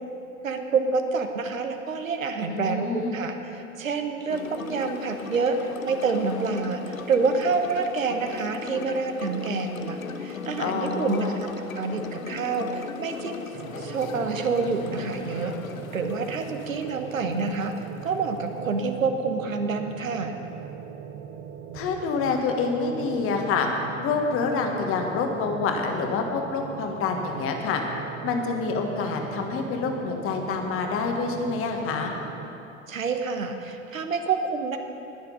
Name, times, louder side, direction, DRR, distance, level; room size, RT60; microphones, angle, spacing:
voice 1, 0.4-11.5 11.7-13.5 13.8-15.5 15.9-17.7 18.0-20.3 32.9-34.8, right 4 dB, 75° right, 6 dB, 1.1 m, -27 dB
voice 2, 2.5-3.2 10.6-11.4 21.7-23.7 24.0-27.8 28.2-32.1, left 4 dB, 35° left, 3 dB, 1.5 m, -27 dB
sound 1, 4.3-19.0, left 5 dB, 80° left, 0.7 m, -38 dB
sound 2, 13.5-32.5, right 8 dB, 30° right, 0.6 m, -40 dB
19.5 x 6.6 x 5.4 m, 3.0 s
figure-of-eight pair, 85°, 40 cm